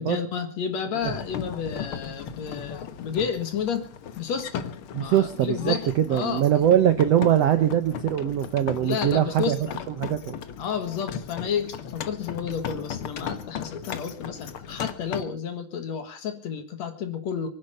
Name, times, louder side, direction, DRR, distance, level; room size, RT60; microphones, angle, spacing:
voice 1, 0.0-3.9 4.2-4.7 5.0-6.4 8.8-10.1 10.6-17.5, left 7 dB, 55° left, 8 dB, 2.5 m, -31 dB
sound 1, 1.0-15.2, left 7 dB, 75° left, 1.2 m, -37 dB
voice 2, 4.9-9.6 9.9-10.3, right 10 dB, 70° right, 10 dB, 1.5 m, -22 dB
24.0 x 10.5 x 5.6 m, 0.43 s
omnidirectional pair, 4.1 m